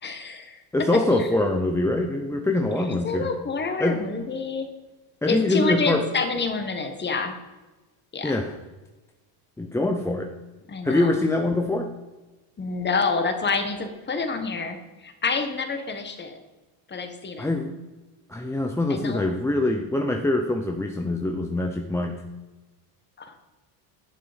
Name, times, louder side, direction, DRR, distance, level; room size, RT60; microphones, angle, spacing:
voice 1, 0.0-0.6 1.2-1.3 2.7-4.7 5.3-7.3 8.1-8.4 10.7-11.2 12.6-16.4 16.9-17.5 18.9-19.2 23.2-23.4, left 4 dB, 20° left, 7 dB, 1.3 m, -28 dB
voice 2, 0.7-3.3 3.8-4.0 5.2-6.0 8.2-8.5 9.6-10.3 10.8-11.9 17.4-17.7 18.3-22.2, left 2 dB, 5° left, 3 dB, 0.5 m, -24 dB
11.0 x 6.7 x 5.1 m, 1.2 s
cardioid pair, 140°, 49 cm